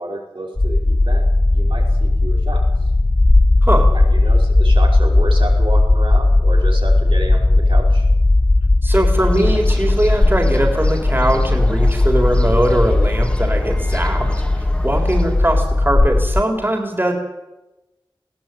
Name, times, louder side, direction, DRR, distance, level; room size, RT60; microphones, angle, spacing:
voice 1, 0.0-2.9 3.9-8.1, right 1 dB, 70° right, -2 dB, 5.5 m, -30 dB
sound 1, 0.6-16.4, left 2 dB, 40° left, 1.0 m, -16 dB
voice 2, 8.8-14.3 14.6-17.1, right 1 dB, 25° right, 2 dB, 3.9 m, -20 dB
sound 2, 9.1-15.8, equal, 15° left, 2.7 m, -33 dB
20.5 x 16.5 x 9.3 m, 0.99 s
wide cardioid pair, 45°, 9 cm